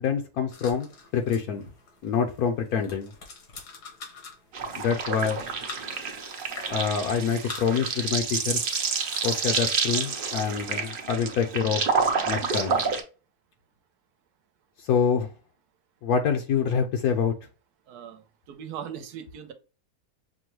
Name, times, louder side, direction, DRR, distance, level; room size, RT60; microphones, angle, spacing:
voice 1, 0.0-1.6 2.0-3.1 4.8-5.4 6.7-8.6 9.2-11.8 12.3-12.8 14.8-15.3 16.0-17.3, left 6 dB, 75° left, 1.1 m, -26 dB
sound 1, 0.5-9.8, left 4 dB, 90° left, 1.9 m, -46 dB
sound 2, 4.5-13.0, right 5 dB, 50° right, 0.7 m, -29 dB
voice 2, 17.9-19.5, right 8 dB, 85° right, 1.2 m, -39 dB
6.0 x 2.2 x 3.0 m
omnidirectional pair, 1.7 m